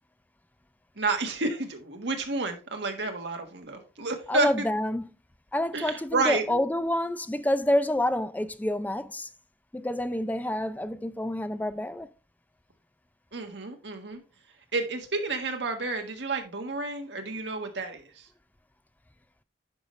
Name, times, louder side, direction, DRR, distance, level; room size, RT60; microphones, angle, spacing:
voice 1, 1.0-4.5 5.7-6.6 13.3-14.2 14.7-18.3, right 3 dB, 70° right, 1.5 m, -30 dB
voice 2, 4.3-5.1 5.5-9.3 9.7-12.1, left 1 dB, 10° left, 0.4 m, -28 dB
9.7 x 5.4 x 3.1 m
head